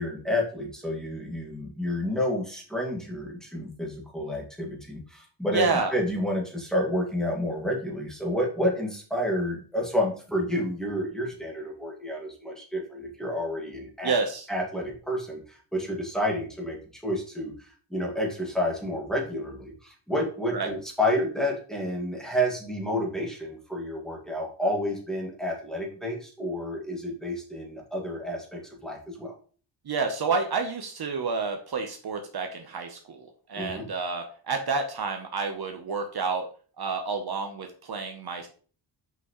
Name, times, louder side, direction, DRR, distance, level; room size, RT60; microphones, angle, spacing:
voice 1, 0.0-5.7 5.9-14.1 14.5-29.3 33.5-33.8, equal, ahead, -2 dB, 1.9 m, -30 dB
voice 2, 5.5-5.9 14.0-14.5 20.5-20.7 29.9-36.5 36.8-38.5, right 4 dB, 50° right, 4 dB, 0.9 m, -29 dB
5.8 x 5.8 x 3.0 m, 0.40 s
wide cardioid pair, 120°, 47 cm